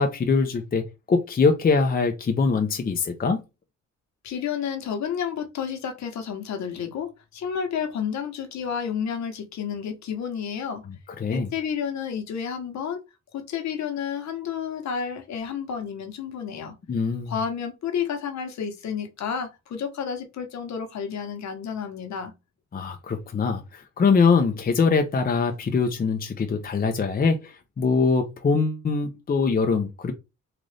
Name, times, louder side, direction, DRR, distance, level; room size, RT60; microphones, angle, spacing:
voice 1, 0.0-3.4 11.2-11.5 16.9-17.3 22.7-30.1, left 4 dB, 30° left, 0.7 m, -23 dB
voice 2, 4.2-10.8 11.3-13.0 13.3-16.7 17.3-22.3, left 7 dB, 65° left, 1.1 m, -31 dB
3.8 x 2.6 x 3.3 m
cardioid pair, 90°, 30 cm